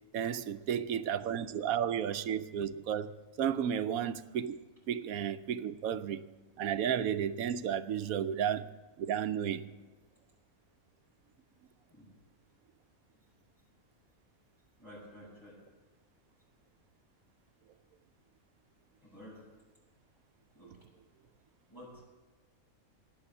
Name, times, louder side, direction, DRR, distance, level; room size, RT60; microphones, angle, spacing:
voice 1, 0.1-4.6 4.9-6.2 6.6-8.7 9.0-9.7, right 9 dB, 90° right, 1.2 m, -33 dB
voice 2, 14.8-15.6 19.0-19.4 20.5-20.8 21.7-22.1, equal, 20° left, 7.0 m, -51 dB
18.0 x 9.1 x 7.1 m
omnidirectional pair, 1.4 m